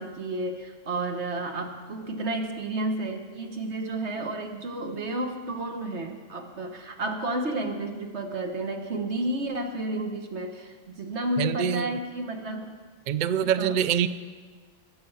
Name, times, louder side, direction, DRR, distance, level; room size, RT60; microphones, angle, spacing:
voice 1, 0.0-12.8 13.6-13.8, right 2 dB, 55° right, 4 dB, 1.6 m, -31 dB
voice 2, 11.4-12.0 13.1-14.1, right 9 dB, 75° right, 14 dB, 0.4 m, -25 dB
22.5 x 8.1 x 5.7 m, 1.5 s
omnidirectional pair, 1.4 m